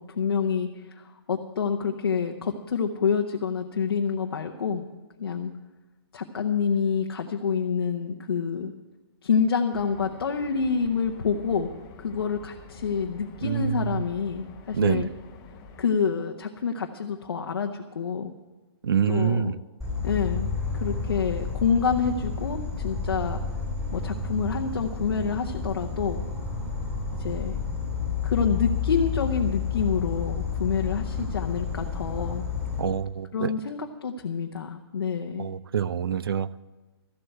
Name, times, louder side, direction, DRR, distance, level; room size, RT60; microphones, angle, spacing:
voice 1, 0.0-4.8 5.2-5.5 6.1-8.7 9.2-11.7 12.0-15.1 15.8-18.3 19.1-19.5 20.0-20.5 20.7-23.4 23.9-26.2 27.2-27.6 28.2-32.4 33.3-35.5, left 6 dB, 65° left, 3 dB, 0.9 m, -27 dB
sound 1, 9.7-15.9, left 4 dB, 15° left, 0.6 m, -47 dB
voice 2, 13.4-14.0 14.7-15.1 18.8-19.6 31.2-31.3 32.8-33.5 35.4-36.5, right 8 dB, 60° right, 19 dB, 0.5 m, -26 dB
Insect, 19.8-32.8, left 5 dB, 5° right, 3.1 m, -30 dB
13.5 x 8.0 x 7.9 m, 1.2 s
hypercardioid pair, 175°, 14 cm